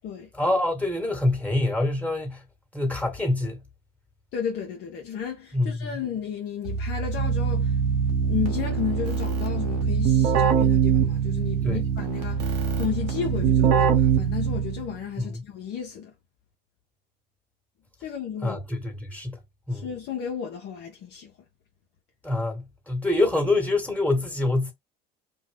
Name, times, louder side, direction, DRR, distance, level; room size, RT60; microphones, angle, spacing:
voice 1, 0.3-2.4 2.7-3.6 5.5-6.0 11.6-11.8 15.2-15.4 18.4-19.4 19.7-19.9 22.2-24.7, left 2 dB, 5° left, 1.4 m, -25 dB
voice 2, 4.3-7.8 8.2-16.1 18.0-18.6 19.7-21.3, left 8 dB, 55° left, 0.7 m, -33 dB
Keyboard (musical), 6.7-14.9, right 7 dB, 80° right, 0.9 m, -23 dB
2.6 x 2.2 x 3.3 m
hypercardioid pair, 75°, 21 cm